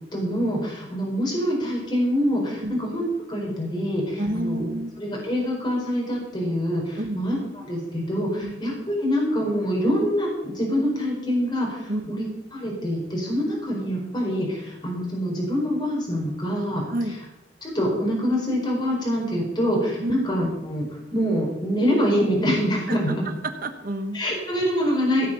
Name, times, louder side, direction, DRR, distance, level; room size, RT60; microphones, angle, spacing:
voice 1, 0.1-4.6 5.0-7.4 7.6-12.3 12.5-16.8 17.6-20.8 21.1-23.2 24.1-25.3, equal, 25° left, -2 dB, 4.6 m, -25 dB
voice 2, 4.2-4.9 7.0-7.2 8.4-8.6 11.9-12.1 16.9-17.2 20.0-20.2 22.9-23.2 23.4-24.2, right 1 dB, 50° right, 7 dB, 1.3 m, -29 dB
16.0 x 7.5 x 6.9 m, 0.94 s
head